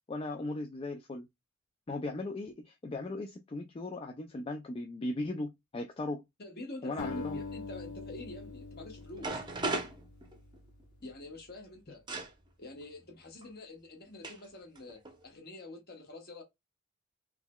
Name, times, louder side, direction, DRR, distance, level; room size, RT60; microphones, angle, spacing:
voice 1, 0.1-1.3 1.9-6.2 6.8-7.4, left 2 dB, 25° left, 0.3 m, -37 dB
voice 2, 6.4-9.4 11.0-12.0 12.6-16.4, left 2 dB, 45° left, 1.3 m, -47 dB
Acoustic guitar, 7.0-11.4, left 4 dB, 75° left, 0.9 m, -44 dB
sound 1, 8.8-8.9 9.2-10.8 12.1-12.3 13.4-13.5 14.2-14.5 14.8-15.2, right 2 dB, 20° right, 0.7 m, -36 dB
3.7 x 3.0 x 2.2 m
head